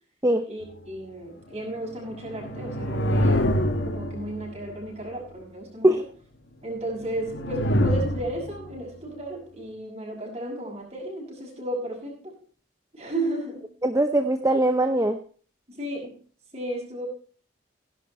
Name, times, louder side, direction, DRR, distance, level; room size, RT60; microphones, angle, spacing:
voice 1, 0.5-3.5 3.8-5.9 6.6-12.4 12.9-13.7 15.7-16.2 16.5-17.1, right 1 dB, 35° right, 0 dB, 5.9 m, -34 dB
sound 1, 1.8-4.8 6.9-8.8, equal, 75° left, 1.9 m, -26 dB
voice 2, 13.8-15.2, right 1 dB, 15° right, 8 dB, 0.7 m, -21 dB
16.5 x 11.0 x 3.2 m, 0.41 s
head